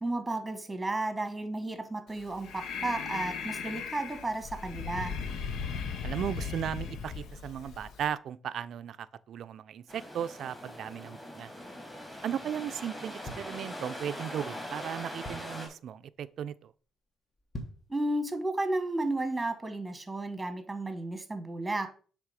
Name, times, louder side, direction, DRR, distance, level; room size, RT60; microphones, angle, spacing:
voice 1, 0.0-5.2 17.9-21.9, right 2 dB, 15° right, 1.3 m, -33 dB
Breathing, 2.1-8.1, left 6 dB, 75° left, 0.7 m, -37 dB
voice 2, 6.0-11.5 12.2-16.7, right 9 dB, 65° right, 0.4 m, -36 dB
sound 1, 9.9-15.7, equal, 10° left, 2.9 m, -42 dB
sound 2, 13.2-14.2 14.7-14.8 15.0-15.7 16.2-16.4 16.7-16.8 17.4-18.0 18.4-18.5, left 1 dB, 35° left, 1.3 m, -44 dB
7.4 x 3.5 x 4.8 m
cardioid pair, 90°, 0 cm